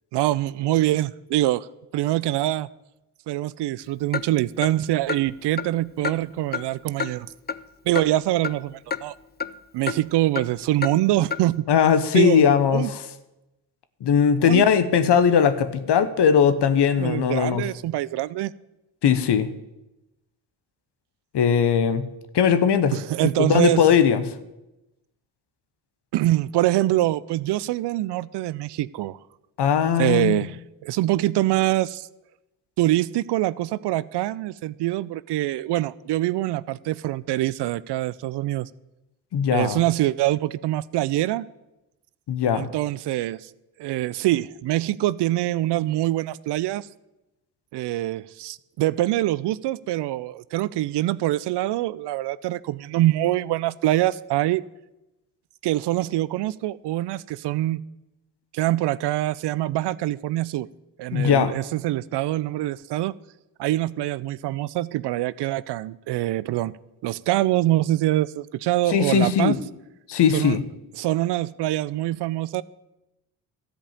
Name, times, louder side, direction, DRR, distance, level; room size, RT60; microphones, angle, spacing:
voice 1, 0.1-1.7 1.9-2.7 3.3-7.3 7.9-9.1 9.7-11.7 12.1-12.4 12.7-12.9 14.4-14.6 17.0-18.5 22.9-23.8 26.1-29.2 30.0-30.6 30.8-32.1 32.8-38.7 39.5-41.5 42.5-43.5 43.8-46.9 47.7-54.6 55.6-57.8 58.5-60.7 61.0-63.1 63.6-66.7 67.0-69.5 70.3-70.6 71.0-72.6, right 15 dB, 60° right, 19 dB, 0.5 m, -24 dB
Clock, 4.1-4.3 4.6-4.7 5.1-5.2 5.6-5.7 6.0-6.2 6.5-6.6 7.0-7.1 7.5-7.6 8.0-8.1 8.4-8.6 8.9-9.0 9.4-9.5 9.9-10.0 10.4-10.5 10.8-10.9 11.3-11.4, left 6 dB, 20° left, 0.6 m, -28 dB
voice 2, 11.7-13.0 14.0-17.6 19.0-19.5 21.3-22.1 22.3-23.0 23.4-24.4 29.6-30.4 39.3-39.8 42.3-42.7 61.1-61.5 68.9-69.6 70.1-70.6, left 7 dB, 60° left, 11 dB, 1.1 m, -19 dB
13.5 x 5.1 x 8.7 m, 0.96 s
hypercardioid pair, 40°, 47 cm